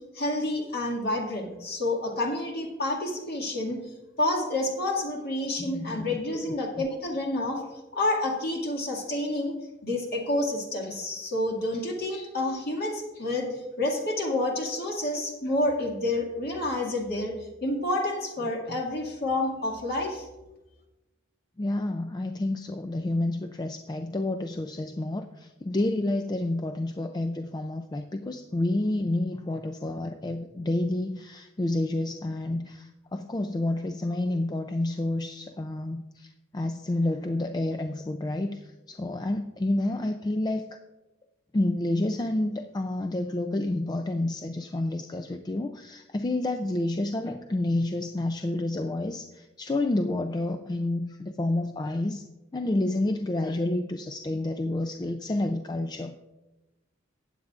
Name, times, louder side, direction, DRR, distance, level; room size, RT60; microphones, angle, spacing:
voice 1, 0.1-3.8 4.2-7.6 7.9-9.5 9.8-13.5 13.8-20.3, left 1 dB, 50° left, 0 dB, 2.1 m, -29 dB
voice 2, 5.6-6.4 6.8-6.9 18.7-18.8 21.6-40.8 41.5-52.2 52.5-56.2, left 1 dB, 20° left, 6 dB, 0.3 m, -29 dB
15.0 x 9.5 x 2.5 m, 1.0 s
head